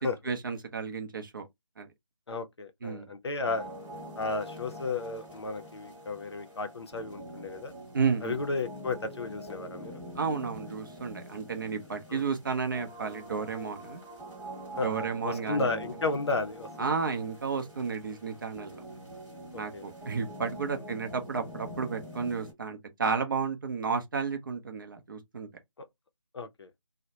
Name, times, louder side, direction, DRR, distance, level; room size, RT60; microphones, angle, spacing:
voice 1, 0.2-1.5 1.8-1.9 2.8-3.1 7.9-8.4 10.2-14.0 14.8-15.8 16.8-18.7 19.5-25.5, right 5 dB, 40° right, 0.6 m, -32 dB
voice 2, 2.3-3.7 4.2-7.7 8.2-9.9 12.1-12.2 14.8-16.9 19.5-19.8 26.3-26.7, left 3 dB, 55° left, 0.5 m, -33 dB
sound 1, 3.4-22.5, equal, 5° right, 0.7 m, -45 dB
2.2 x 2.1 x 2.7 m
figure-of-eight pair, 160°, 17 cm